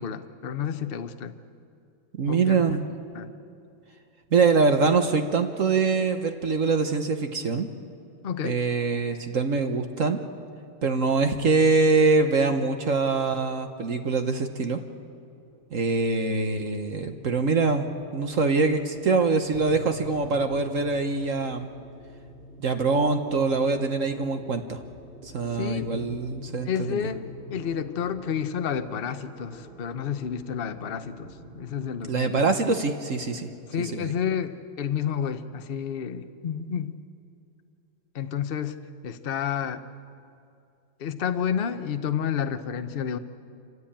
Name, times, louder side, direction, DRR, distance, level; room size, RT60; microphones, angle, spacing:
voice 1, 0.0-1.3 2.3-2.7 3.1-3.3 8.2-8.6 25.6-25.9 26.7-32.4 33.7-37.0 38.1-38.8 39.0-39.8 41.0-43.2, left 8 dB, 55° left, 9 dB, 0.6 m, -30 dB
voice 2, 2.2-2.9 4.3-7.7 8.4-10.2 10.8-14.8 15.7-21.7 22.6-24.8 25.2-27.0 32.1-33.5 33.8-34.1, right 4 dB, 45° right, 6 dB, 1.2 m, -24 dB
sound 1, 15.4-32.2, equal, 25° right, 2.7 m, -45 dB
27.0 x 16.0 x 8.7 m, 2.5 s
omnidirectional pair, 2.2 m